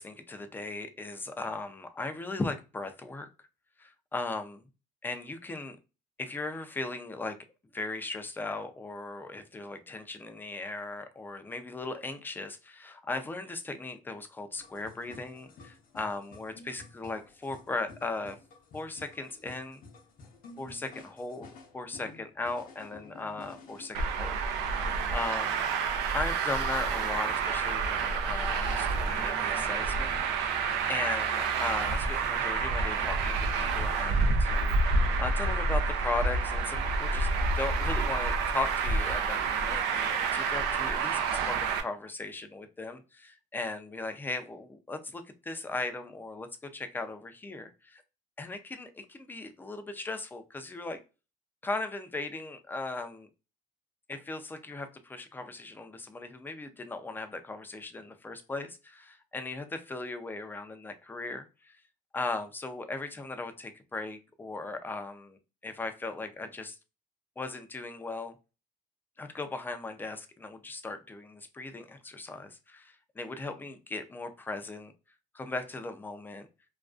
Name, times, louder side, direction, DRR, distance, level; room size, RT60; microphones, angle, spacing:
voice 1, 0.0-3.5 3.8-4.6 5.0-5.8 6.2-7.4 7.7-18.4 18.7-19.8 20.6-21.5 21.7-24.4 25.1-25.6 26.1-30.6 30.9-37.3 37.6-46.5 46.7-48.0 48.4-51.0 51.6-53.3 54.1-61.8 62.1-66.8 67.4-68.3 69.2-74.9 75.3-76.5, left 3 dB, 10° left, 8 dB, 0.4 m, -38 dB
sound 1, 14.5-23.9, left 3 dB, 55° left, 0.6 m, -52 dB
Traffic noise roadway noise, 23.9-41.8, right 4 dB, 85° right, 0.4 m, -28 dB
2.4 x 2.2 x 2.3 m, 0.30 s
cardioid pair, 110°, 17 cm